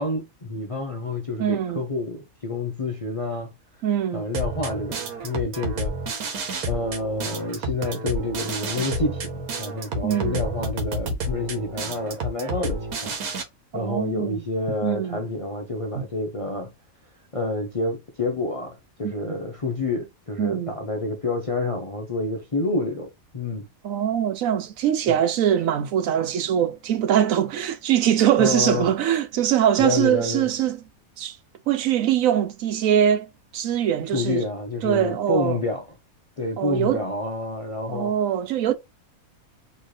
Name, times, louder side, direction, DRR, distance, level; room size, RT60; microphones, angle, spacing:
voice 1, 0.0-3.5 4.1-5.9 6.6-13.2 13.7-16.7 17.3-23.1 23.3-23.7 28.4-28.9 29.8-30.5 34.1-35.8 36.4-38.1, left 2 dB, 40° left, 0.5 m, -28 dB
voice 2, 1.4-1.8 3.8-4.2 10.0-10.4 13.7-14.4 14.8-15.2 19.0-19.4 20.4-20.7 23.8-30.8 31.2-31.4 31.7-33.3 33.5-34.4 34.8-35.6 36.6-37.0 37.9-38.7, right 10 dB, 70° right, 1.0 m, -22 dB
sound 1, 4.3-13.4, right 1 dB, 85° right, 1.6 m, -30 dB
4.1 x 3.0 x 3.2 m
omnidirectional pair, 1.5 m